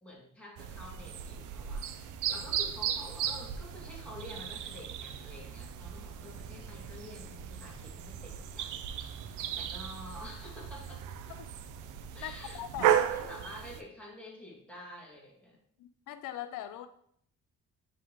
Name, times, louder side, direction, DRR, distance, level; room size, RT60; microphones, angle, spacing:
voice 1, 0.0-8.8 9.1-11.0 12.1-15.6, left 1 dB, 5° left, -4 dB, 2.1 m, -49 dB
sound 1, 0.6-13.8, right 10 dB, 80° right, 0.5 m, -35 dB
voice 2, 12.2-13.0 15.8-16.9, left 12 dB, 90° left, 10 dB, 0.5 m, -41 dB
9.1 x 3.8 x 3.0 m, 0.67 s
cardioid pair, 90°, 30 cm